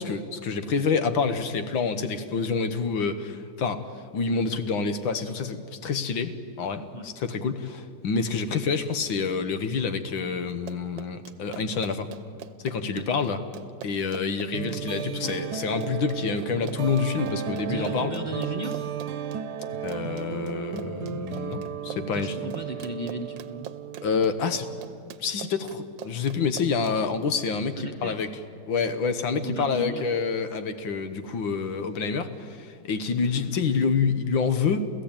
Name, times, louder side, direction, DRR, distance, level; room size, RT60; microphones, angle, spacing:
voice 1, 0.0-3.8 4.1-12.1 12.6-13.4 13.8-18.1 19.8-22.4 24.0-24.7 25.2-28.3 28.7-34.9, left 5 dB, 85° left, 9 dB, 2.0 m, -27 dB
Run, 10.5-27.0, right 9 dB, 80° right, 1.6 m, -43 dB
sound 1, 14.5-25.1, right 8 dB, 65° right, 1.3 m, -35 dB
voice 2, 17.6-19.0 22.1-23.7 27.8-28.3 29.3-30.0, right 1 dB, 30° right, 4 dB, 0.9 m, -35 dB
28.5 x 15.5 x 8.9 m, 2.2 s
omnidirectional pair, 2.0 m